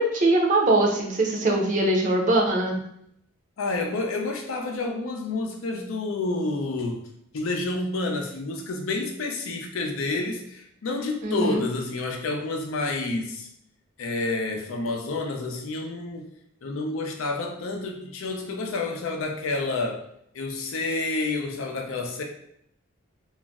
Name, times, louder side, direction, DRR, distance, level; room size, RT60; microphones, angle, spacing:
voice 1, 0.0-2.8 11.2-11.6, right 2 dB, 40° right, 0 dB, 0.5 m, -22 dB
voice 2, 3.6-7.0 7.3-13.5 14.0-16.3 16.6-20.0 20.3-22.2, left 2 dB, 85° left, 3 dB, 0.5 m, -29 dB
2.4 x 2.0 x 3.5 m, 0.72 s
head